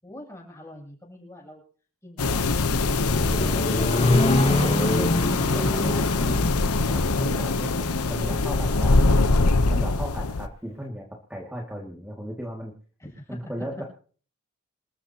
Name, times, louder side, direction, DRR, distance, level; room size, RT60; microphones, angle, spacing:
voice 1, 0.0-1.6 2.0-3.8 13.0-13.5, left 1 dB, 15° left, -2 dB, 7.4 m, -44 dB
sound 1, 2.2-10.5, left 3 dB, 85° left, 0.9 m, -23 dB
Accelerating revving vroom, 2.5-8.5, left 1 dB, 30° left, 1.6 m, -26 dB
voice 2, 4.6-12.7 13.3-13.8, equal, 5° right, -2 dB, 2.1 m, -36 dB
27.5 x 13.5 x 2.9 m, 0.43 s
head